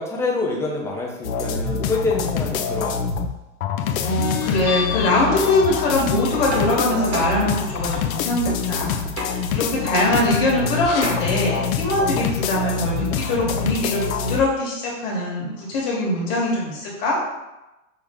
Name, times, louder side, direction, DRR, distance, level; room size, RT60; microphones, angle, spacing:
voice 1, 0.0-3.1, left 3 dB, 5° left, -2 dB, 0.5 m, -26 dB
sound 1, 1.2-3.3 3.6-14.4, left 6 dB, 85° left, 0.5 m, -25 dB
voice 2, 4.0-17.2, left 2 dB, 50° left, -4 dB, 1.3 m, -22 dB
sound 2, 6.4-8.0 9.2-9.6 9.9-11.6 14.8-14.9 15.2-16.2, right 2 dB, 50° right, 1.0 m, -35 dB
5.1 x 2.1 x 3.4 m, 0.99 s
hypercardioid pair, 120°, 40 cm